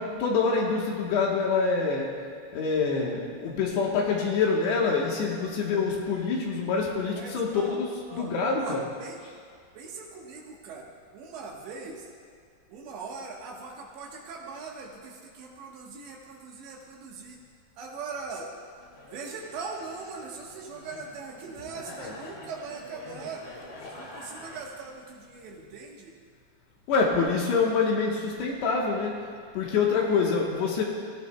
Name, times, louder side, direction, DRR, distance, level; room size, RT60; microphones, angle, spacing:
voice 1, 0.0-2.1 2.5-8.8 26.9-29.2 29.5-30.9, left 4 dB, 70° left, -2 dB, 3.1 m, -26 dB
voice 2, 7.1-7.8 8.1-9.2 9.7-12.1 12.7-17.4 17.8-18.5 19.0-23.4 23.9-26.2, right 4 dB, 70° right, -1 dB, 3.4 m, -41 dB
sound 1, 18.2-24.6, left 2 dB, 40° left, 2.9 m, -46 dB
20.5 x 16.0 x 2.3 m, 2.2 s
omnidirectional pair, 5.5 m